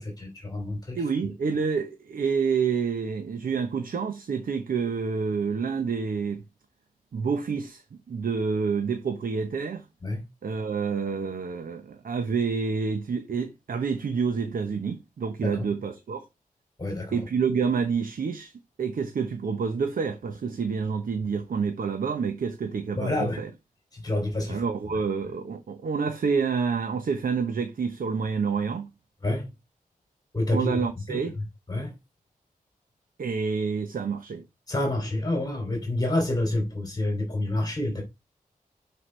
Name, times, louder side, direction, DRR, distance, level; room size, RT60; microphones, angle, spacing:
voice 1, 0.0-1.0 10.0-10.2 15.4-15.7 16.8-17.2 23.0-23.4 23.9-24.6 29.2-29.5 30.3-30.8 31.1-31.4 31.7-31.9 34.7-38.0, left 1 dB, 25° left, 3.0 m, -28 dB
voice 2, 0.9-6.4 7.1-9.8 10.4-16.3 17.1-18.5 18.8-23.5 24.5-28.9 30.5-31.4 33.2-34.4, right 5 dB, 70° right, 0.9 m, -28 dB
11.0 x 4.8 x 3.3 m
wide cardioid pair, 120°, 15 cm